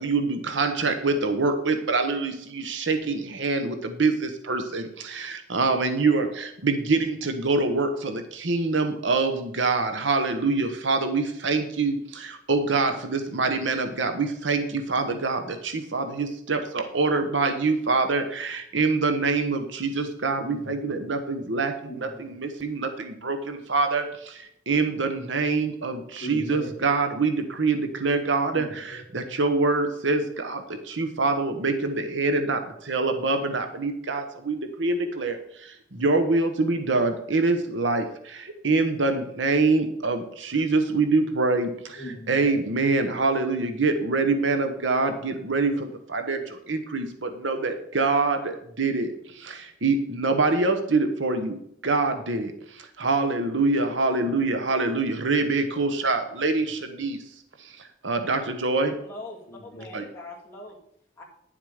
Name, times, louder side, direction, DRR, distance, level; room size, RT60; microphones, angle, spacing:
voice 1, 0.0-2.3 2.7-4.1 4.5-4.8 5.5-6.3 6.6-8.2 8.5-11.9 12.5-14.6 14.9-15.4 15.9-21.7 22.6-22.9 23.2-23.4 23.7-24.0 24.7-27.3 27.6-28.7 29.1-30.6 31.0-32.6 32.9-34.5 34.8-35.3 36.0-38.0 38.6-40.2 40.5-41.7 42.3-45.7 46.1-46.4 46.7-47.0 47.4-48.4 48.8-49.1 49.8-51.5 51.8-52.5 53.0-57.1 58.0-58.9 59.9-60.0, right 3 dB, 80° right, 7 dB, 1.1 m, -24 dB
voice 2, 20.4-21.0 21.9-22.4 26.2-26.8 28.5-29.0 42.0-42.6 45.3-45.7 55.3-55.8 56.8-56.9 59.5-59.9, equal, 55° left, -4 dB, 2.6 m, -41 dB
voice 3, 59.0-60.8 61.2-61.3, left 2 dB, 10° left, -3 dB, 2.2 m, -42 dB
10.5 x 7.5 x 4.9 m, 0.72 s
head